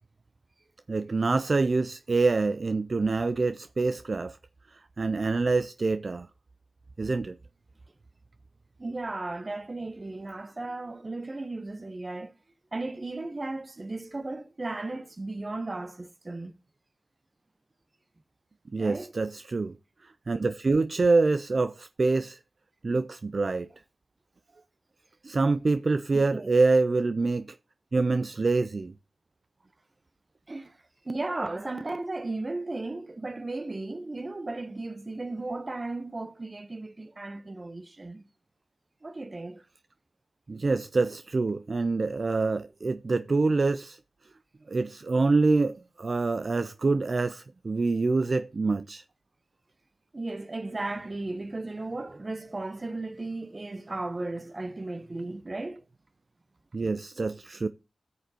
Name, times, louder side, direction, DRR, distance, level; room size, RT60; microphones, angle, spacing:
voice 1, 0.9-4.4 5.0-6.3 7.0-7.4 18.7-19.7 20.0-22.4 22.8-23.7 25.2-27.6 27.9-28.9 40.5-44.0 44.7-49.0 56.7-57.7, right 3 dB, 55° right, 0.4 m, -26 dB
voice 2, 8.8-12.3 12.7-16.5 18.8-19.1 26.1-26.5 30.5-30.8 31.0-38.3 39.0-39.6 50.1-55.8, right 2 dB, 40° right, 1.0 m, -35 dB
13.5 x 6.8 x 2.9 m
cardioid pair, 40°, 0 cm